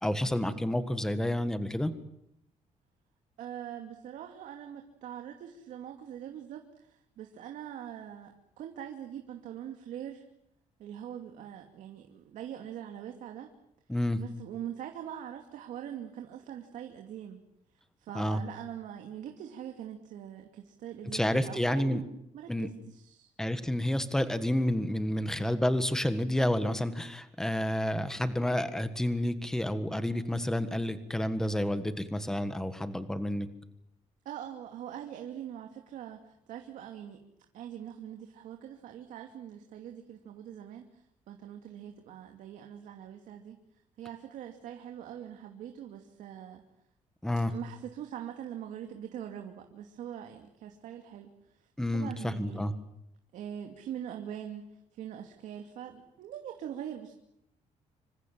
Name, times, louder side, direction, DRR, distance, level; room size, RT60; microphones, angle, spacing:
voice 1, 0.0-1.9 13.9-14.2 18.1-18.4 21.1-22.0 22.5-22.7 23.4-33.5 47.2-47.5 51.8-52.7, left 1 dB, 5° left, 11 dB, 1.6 m, -30 dB
voice 2, 3.4-10.2 10.8-13.5 14.1-17.4 18.0-23.3 34.2-37.2 37.5-43.6 44.0-46.6 47.5-51.3 51.6-52.7 53.3-57.1, right 10 dB, 75° right, 4 dB, 2.6 m, -43 dB
27.0 x 25.5 x 7.6 m, 0.78 s
cardioid pair, 175°, 13 cm